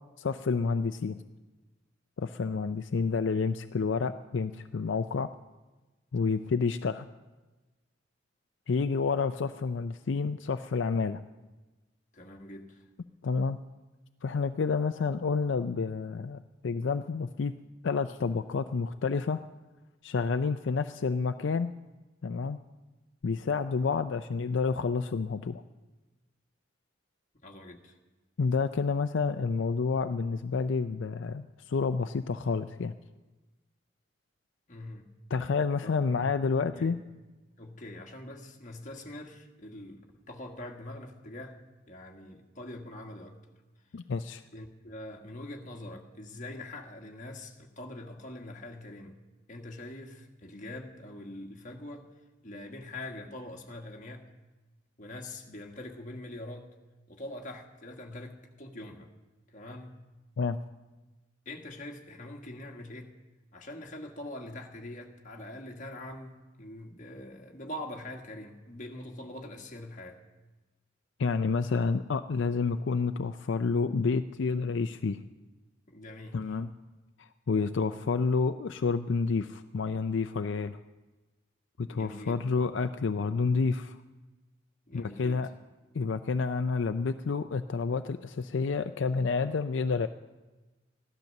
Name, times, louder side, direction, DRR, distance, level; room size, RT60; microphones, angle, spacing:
voice 1, 0.2-1.2 2.2-5.3 6.1-7.1 8.7-11.2 13.2-13.6 14.2-17.5 17.8-19.4 20.0-21.7 22.2-22.6 23.2-25.6 28.4-32.9 35.3-37.0 43.9-44.4 60.4-60.6 71.2-75.2 76.3-76.7 77.2-80.8 81.8-84.0 84.9-85.5 85.9-90.1, left 4 dB, 75° left, 9 dB, 0.4 m, -29 dB
voice 2, 12.1-12.8 27.4-28.0 34.7-35.1 35.8-37.0 37.6-41.6 41.9-43.4 44.5-49.2 49.5-52.1 52.4-54.3 55.0-56.7 57.1-59.1 59.5-60.0 61.4-63.1 63.5-70.2 75.9-76.6 81.9-82.5 84.9-85.5, left 1 dB, 40° left, 2 dB, 1.6 m, -44 dB
15.0 x 12.0 x 6.5 m, 1.2 s
head